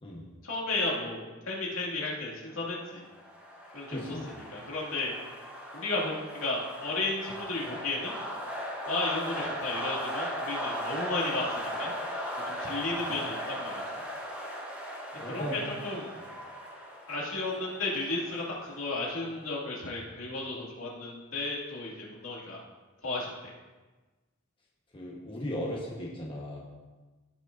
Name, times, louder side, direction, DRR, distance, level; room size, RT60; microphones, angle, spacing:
voice 1, 0.4-3.0 3.7-4.0 4.5-5.1 5.7-8.1 8.9-11.9 12.4-13.8 15.3-16.1 17.1-22.6 23.0-23.3, left 2 dB, 80° left, -5 dB, 2.5 m, -33 dB
sound 1, 2.8-19.5, equal, 5° right, 1.4 m, -38 dB
voice 2, 3.9-4.3 13.1-13.2 15.1-15.6 24.9-26.7, equal, 25° left, -3 dB, 1.2 m, -37 dB
16.0 x 6.2 x 2.6 m, 1.2 s
head